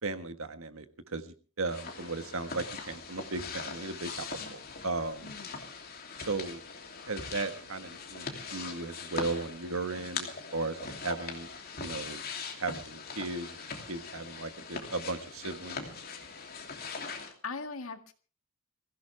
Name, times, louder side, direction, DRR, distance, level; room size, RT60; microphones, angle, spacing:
voice 1, 0.0-5.3 6.2-6.6 7.1-11.5 11.8-12.2 12.6-15.8, right 3 dB, 70° right, 9 dB, 1.5 m, -36 dB
sound 1, 1.7-17.3, left 5 dB, 45° left, 2.9 m, -41 dB
voice 2, 17.2-18.1, left 4 dB, 70° left, 7 dB, 1.9 m, -41 dB
23.0 x 16.0 x 3.5 m, 0.38 s
head